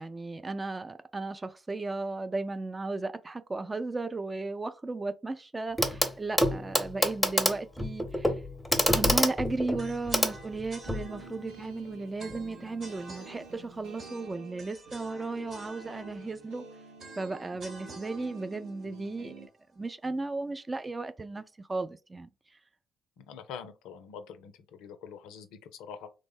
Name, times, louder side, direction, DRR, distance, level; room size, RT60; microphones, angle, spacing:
voice 1, 0.0-8.3 8.9-16.6 17.2-19.3 19.7-22.3, right 3 dB, 25° right, 0.4 m, -35 dB
Clock, 5.8-6.1 6.4-11.1 12.3-12.4, left 1 dB, 10° left, 0.7 m, -27 dB
sound 1, 9.8-19.9, right 3 dB, 55° right, 1.0 m, -49 dB
sound 2, 10.7-19.5, right 4 dB, 75° right, 0.7 m, -50 dB
voice 2, 23.2-26.1, left 7 dB, 65° left, 0.4 m, -45 dB
3.2 x 2.0 x 3.4 m
figure-of-eight pair, 45°, 0 cm